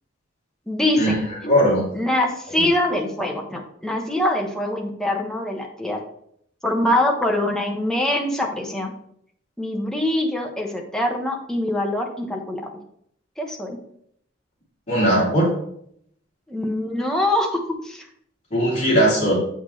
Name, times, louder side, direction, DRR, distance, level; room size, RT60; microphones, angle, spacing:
voice 1, 0.7-1.0 1.9-6.0 6.6-8.9 9.6-12.7 13.4-13.8 16.5-18.1, left 1 dB, 5° left, 1 dB, 1.1 m, -24 dB
voice 2, 1.4-1.8 2.5-2.7 14.9-15.5 18.5-19.4, equal, 40° left, -5 dB, 3.1 m, -18 dB
8.0 x 5.9 x 3.2 m, 0.69 s
head